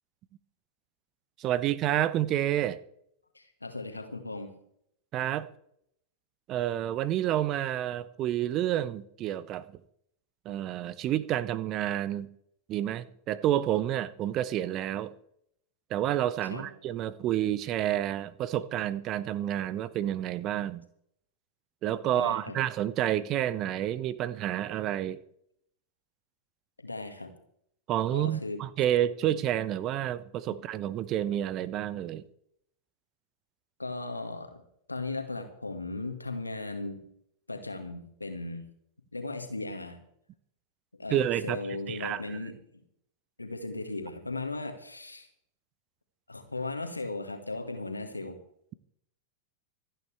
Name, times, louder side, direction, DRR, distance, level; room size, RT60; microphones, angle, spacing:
voice 1, 1.4-2.8 5.1-5.5 6.5-9.7 10.4-12.3 12.7-15.1 15.9-20.8 21.8-25.2 27.9-32.2 41.1-42.4, right 12 dB, 35° right, 0.8 m, -29 dB
voice 2, 3.4-4.5 16.5-16.7 22.0-22.6 26.8-27.4 28.1-28.6 33.8-34.6 34.9-37.1 37.5-38.6 39.1-40.0 41.0-42.5 43.4-45.3 46.3-48.4, left 2 dB, 80° left, 1.9 m, -37 dB
26.5 x 9.1 x 3.4 m
figure-of-eight pair, 90°, 0 cm